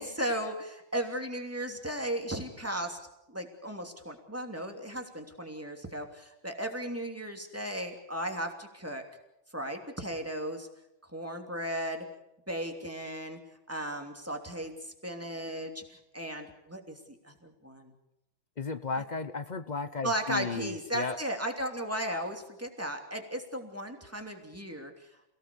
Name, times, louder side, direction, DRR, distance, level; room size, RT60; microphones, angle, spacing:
voice 1, 0.0-3.0 3.3-9.0 9.5-10.7 11.1-12.0 12.5-13.4 13.7-14.8 15.0-17.9 20.0-24.9, right 1 dB, 5° right, 3 dB, 2.8 m, -36 dB
voice 2, 18.6-21.2, left 4 dB, 85° left, 11 dB, 0.4 m, -34 dB
28.5 x 17.5 x 7.0 m, 0.86 s
omnidirectional pair, 2.2 m